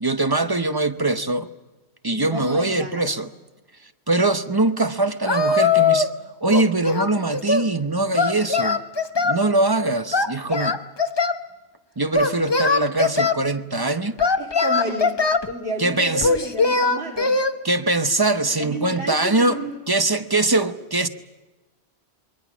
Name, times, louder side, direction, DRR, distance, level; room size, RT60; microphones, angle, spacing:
voice 1, 0.0-1.5 2.0-3.3 4.1-6.1 6.4-8.8 9.2-10.9 12.0-14.2 15.8-16.3 17.6-19.6 19.9-21.1, right 2 dB, 25° right, 0.8 m, -22 dB
voice 2, 2.1-3.0 14.4-15.1 15.5-17.3 18.6-19.8, right 2 dB, 65° right, 3.5 m, -31 dB
Singing, 5.3-6.2 6.5-7.7 8.1-9.4 10.1-11.4 12.1-13.4 14.2-15.5 16.2-17.5, left 4 dB, 25° left, 0.9 m, -20 dB
27.5 x 23.0 x 6.2 m
omnidirectional pair, 1.1 m